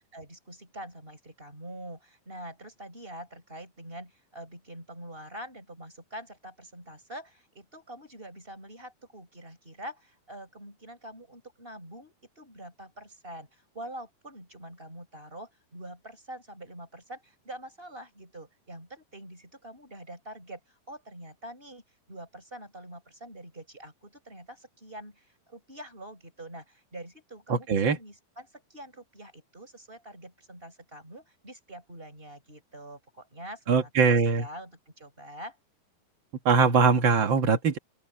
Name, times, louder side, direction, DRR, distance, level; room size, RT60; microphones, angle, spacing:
voice 1, 0.1-21.8 22.1-35.6, right 1 dB, 15° right, 6.8 m, -45 dB
voice 2, 27.5-28.0 33.7-34.4 36.4-37.8, right 5 dB, 60° right, 1.2 m, -22 dB
open air
omnidirectional pair, 4.4 m